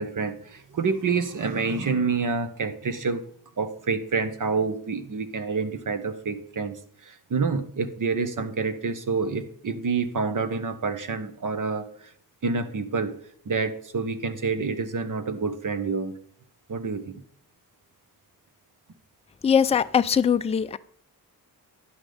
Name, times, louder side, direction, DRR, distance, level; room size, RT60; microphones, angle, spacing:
voice 1, 0.0-3.2 3.6-6.8 7.0-11.9 12.4-13.1 13.5-16.1 16.7-17.2, right 4 dB, 50° right, 9 dB, 1.1 m, -28 dB
voice 2, 19.4-20.8, left 7 dB, 15° left, 11 dB, 0.4 m, -21 dB
9.9 x 6.0 x 5.0 m, 0.63 s
wide cardioid pair, 105°, 39 cm